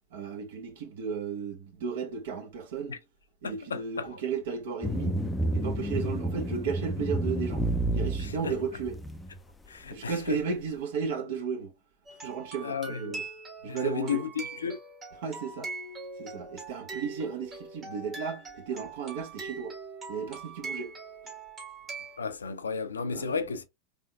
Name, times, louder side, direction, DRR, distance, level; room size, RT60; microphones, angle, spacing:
voice 1, 0.1-2.9 3.4-5.2 5.5-7.6 7.9-9.0 9.9-11.7 12.2-13.2 13.6-14.2 15.2-15.7 16.2-19.8 20.1-20.9 23.1-23.4, right 6 dB, 60° right, 1.0 m, -34 dB
voice 2, 3.4-4.2 8.2-8.5 9.7-10.4 12.6-13.2 13.6-14.3 14.6-14.8 22.2-23.6, left 6 dB, 75° left, 0.4 m, -34 dB
sound 1, 4.8-9.4, right 1 dB, 10° left, 0.4 m, -30 dB
sound 2, 12.1-22.2, right 4 dB, 25° right, 1.4 m, -42 dB
3.4 x 3.1 x 2.3 m
figure-of-eight pair, 90°, 0 cm